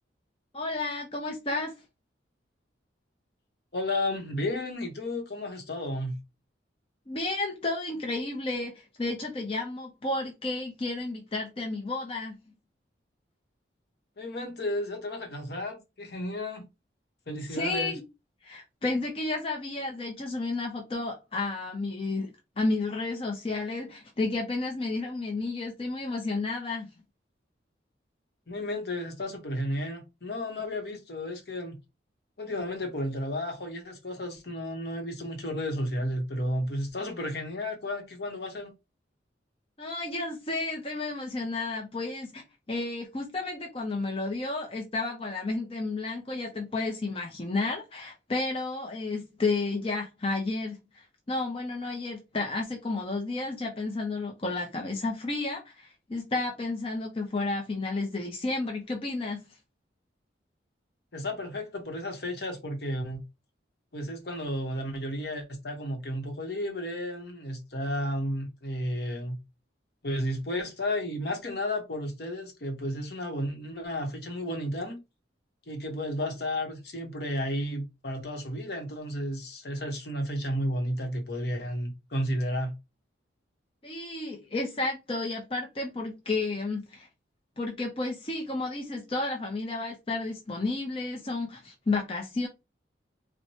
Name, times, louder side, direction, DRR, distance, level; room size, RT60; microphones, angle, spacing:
voice 1, 0.5-1.7 7.1-12.4 17.5-18.0 18.4-26.9 39.8-59.4 83.8-87.1 87.6-92.5, left 3 dB, 30° left, 0.6 m, -32 dB
voice 2, 3.7-6.2 14.2-16.6 17.3-18.0 28.5-31.8 32.4-38.7 61.1-63.2 63.9-69.4 70.0-75.0 75.7-82.7, left 1 dB, 60° left, 0.9 m, -33 dB
4.5 x 2.2 x 2.8 m
head